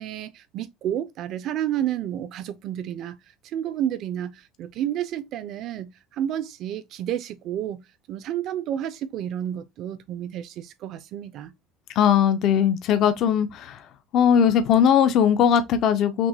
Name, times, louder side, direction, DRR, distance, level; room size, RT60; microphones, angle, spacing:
voice 1, 0.0-3.2 3.5-11.5, right 11 dB, 40° right, 0.5 m, -30 dB
voice 2, 12.0-13.8 14.1-16.3, left 8 dB, 40° left, 0.5 m, -19 dB
6.0 x 2.1 x 2.7 m
cardioid pair, 180°, 0 cm